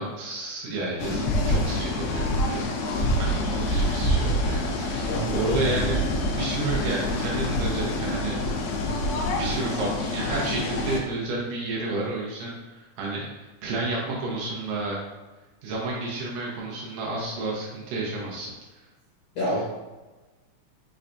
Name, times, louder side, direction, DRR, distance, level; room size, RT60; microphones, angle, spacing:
voice 1, 0.0-2.6 3.2-8.4 9.3-15.0 15.6-18.5, right 2 dB, 90° right, -4 dB, 2.5 m, -31 dB
sound 1, 1.0-11.0, left 1 dB, 80° left, 1.6 m, -26 dB
voice 2, 5.1-5.6 19.4-19.6, equal, 65° left, -8 dB, 1.9 m, -27 dB
5.6 x 3.4 x 2.6 m, 1.2 s
omnidirectional pair, 3.6 m